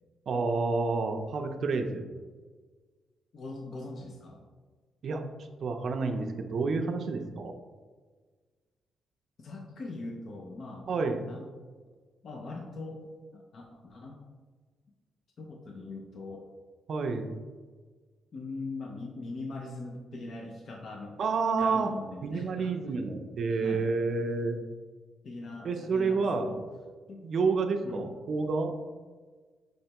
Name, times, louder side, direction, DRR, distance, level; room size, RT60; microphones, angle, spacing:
voice 1, 0.3-2.0 5.0-7.5 10.9-11.2 16.9-17.3 21.2-21.9 22.2-24.6 25.6-26.5 27.2-28.7, right 4 dB, 55° right, 4 dB, 0.4 m, -29 dB
voice 2, 3.3-4.5 9.4-10.9 11.3-11.5 12.2-13.0 13.3-14.2 15.4-16.5 18.3-21.2 21.6-22.7 23.5-23.8 25.2-26.6 27.1-27.2 27.8-28.1, left 3 dB, 50° left, 0 dB, 0.5 m, -41 dB
5.3 x 3.2 x 2.9 m, 1.4 s
cardioid pair, 130°, 0 cm